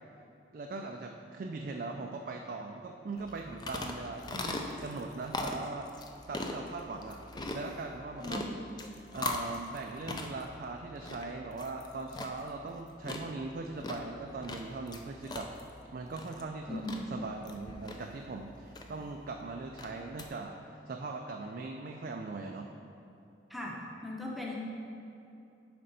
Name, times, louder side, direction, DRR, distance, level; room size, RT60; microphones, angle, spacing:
voice 1, 0.5-5.9 6.3-8.4 9.1-15.5 15.9-22.7, right 3 dB, 50° right, 2 dB, 0.3 m, -40 dB
sound 1, 3.2-20.3, left 2 dB, 20° left, 0.4 m, -41 dB
voice 2, 16.7-17.0 23.5-24.5, left 1 dB, ahead, -3 dB, 0.8 m, -38 dB
7.6 x 5.2 x 4.0 m, 2.8 s
head